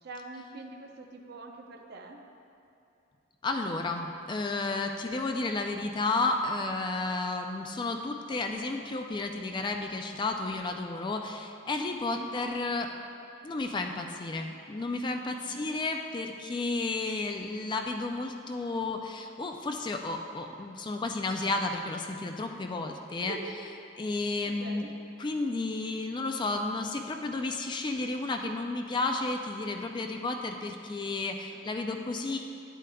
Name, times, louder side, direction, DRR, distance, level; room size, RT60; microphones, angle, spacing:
voice 1, 0.0-2.2 12.1-12.3 15.4-15.6 23.2-23.6 23.9-24.0 24.4-24.9 31.5-31.6, right 3 dB, 55° right, 3 dB, 0.6 m, -44 dB
voice 2, 3.4-12.9 13.4-23.4 24.0-24.8 25.2-32.4, left 3 dB, 25° left, 4 dB, 0.3 m, -32 dB
10.0 x 8.2 x 2.3 m, 2.6 s
head